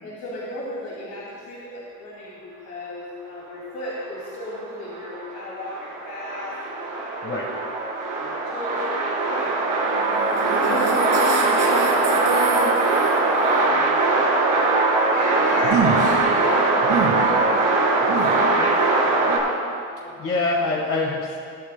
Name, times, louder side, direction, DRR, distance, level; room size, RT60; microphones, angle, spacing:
voice 1, 0.0-7.6 8.2-9.5 10.5-14.7 15.1-19.3 19.7-20.2, left 1 dB, 75° left, -7 dB, 2.6 m, -35 dB
sound 1, 4.4-19.4, right 3 dB, 85° right, 2.3 m, -21 dB
voice 2, 18.4-18.7 20.2-21.4, left 3 dB, 45° left, -2 dB, 1.6 m, -25 dB
21.0 x 8.7 x 2.2 m, 2.3 s
cardioid pair, 90°, 30 cm